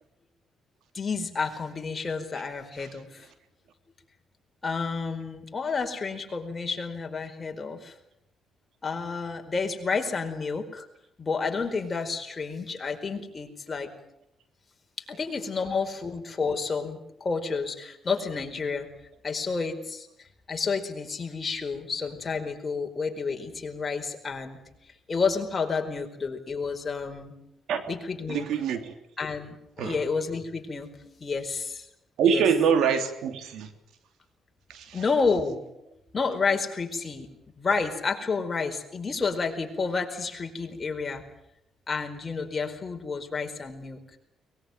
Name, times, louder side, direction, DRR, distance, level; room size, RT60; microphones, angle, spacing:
voice 1, 0.9-3.3 4.6-7.9 8.8-10.9 11.2-13.9 15.1-18.9 19.2-24.6 25.1-27.3 27.9-28.4 29.2-30.9 31.2-31.9 32.2-32.4 34.9-37.3 37.6-41.2 41.9-44.0, left 4 dB, 30° left, 4 dB, 4.6 m, -30 dB
voice 2, 28.3-28.9 29.8-30.0 32.2-33.7 34.7-35.0, right 7 dB, 80° right, 8 dB, 3.1 m, -25 dB
23.0 x 21.0 x 9.2 m, 0.79 s
cardioid pair, 90°, 0 cm